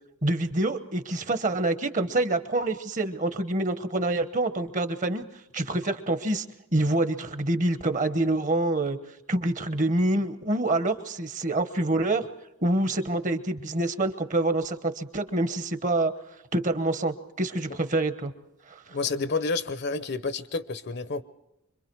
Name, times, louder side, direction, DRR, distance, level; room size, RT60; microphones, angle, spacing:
voice 1, 0.2-5.2 5.5-6.5 6.7-9.0 9.3-12.3 12.6-16.1 16.5-18.3 18.7-19.0, right 2 dB, 35° right, 10 dB, 1.1 m, -26 dB
voice 2, 18.9-21.2, left 4 dB, 50° left, 14 dB, 0.8 m, -29 dB
25.5 x 23.5 x 4.6 m, 0.91 s
head